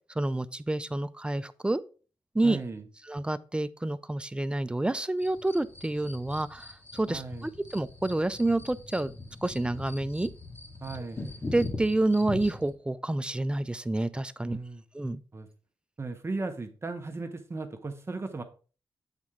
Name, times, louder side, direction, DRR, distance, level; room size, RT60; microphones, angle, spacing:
voice 1, 0.2-1.8 2.3-2.6 3.1-9.1 9.4-10.3 11.5-14.6 14.9-15.2, right 2 dB, 10° right, 0.4 m, -28 dB
voice 2, 2.4-2.8 7.1-7.5 10.8-11.2 14.4-14.8 15.3-15.5 16.0-18.4, right 3 dB, 30° right, 0.9 m, -36 dB
sound 1, 5.2-12.7, left 2 dB, 25° left, 1.9 m, -41 dB
8.2 x 4.2 x 3.6 m
cardioid pair, 100°, 9 cm